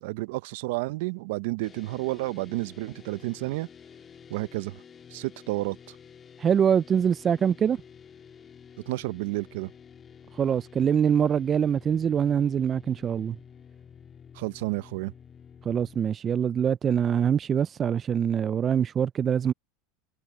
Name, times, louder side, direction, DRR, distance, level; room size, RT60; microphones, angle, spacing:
voice 1, 0.0-3.7 4.3-4.8 5.1-6.0 8.9-9.7 14.3-15.1, right 21 dB, 70° right, 0.7 m, -31 dB
sound 1, 1.6-16.0, left 7 dB, 30° left, 1.9 m, -50 dB
voice 2, 6.4-7.8 10.3-13.4 15.7-19.5, right 8 dB, 35° right, 0.4 m, -24 dB
hypercardioid pair, 95°, 0 cm